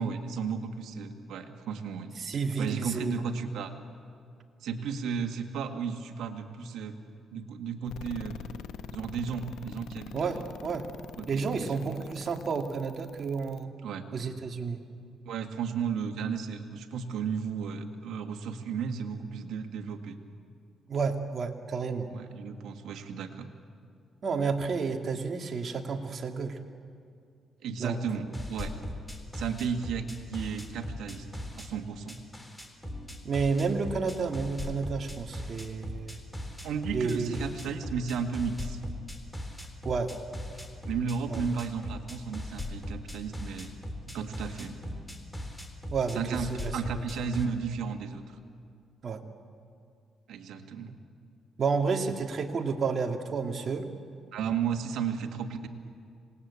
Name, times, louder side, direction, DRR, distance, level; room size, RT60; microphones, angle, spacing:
voice 1, 0.0-2.1 2.6-3.7 4.6-7.0 7.3-8.4 8.9-10.4 11.2-12.0 13.8-14.1 15.3-20.2 22.1-23.5 27.6-28.7 29.3-31.3 31.5-32.2 36.6-38.8 40.8-43.7 44.1-44.8 46.1-48.4 50.3-50.9 54.3-55.7, right 6 dB, 80° right, 6 dB, 2.0 m, -34 dB
voice 2, 2.2-3.1 10.1-10.9 11.3-13.7 14.1-14.8 20.9-22.1 24.2-26.6 27.8-28.0 33.2-36.2 36.9-37.4 39.8-40.1 41.3-41.4 45.9-46.2 46.5-46.7 49.0-49.2 51.6-53.9, right 5 dB, 45° right, 3 dB, 2.4 m, -30 dB
sound 1, 7.9-13.6, left 9 dB, 85° left, 1.0 m, -44 dB
sound 2, 28.3-31.7 32.1-47.5, left 1 dB, 10° left, 3.4 m, -39 dB
27.0 x 19.5 x 8.5 m, 2.3 s
cardioid pair, 90°, 0 cm